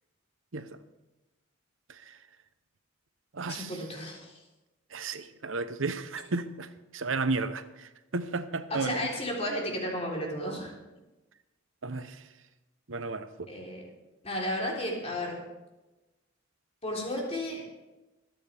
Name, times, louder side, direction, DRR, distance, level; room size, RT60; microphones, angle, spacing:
voice 1, 0.5-0.8 1.9-2.2 3.3-3.8 4.9-9.1 11.8-12.3 12.9-13.5, right 3 dB, 80° right, 11 dB, 0.9 m, -34 dB
voice 2, 3.5-4.4 8.7-10.7 13.5-13.8 14.2-15.4 16.8-17.7, left 1 dB, 35° left, -2 dB, 3.7 m, -33 dB
26.0 x 9.3 x 3.5 m, 1.1 s
head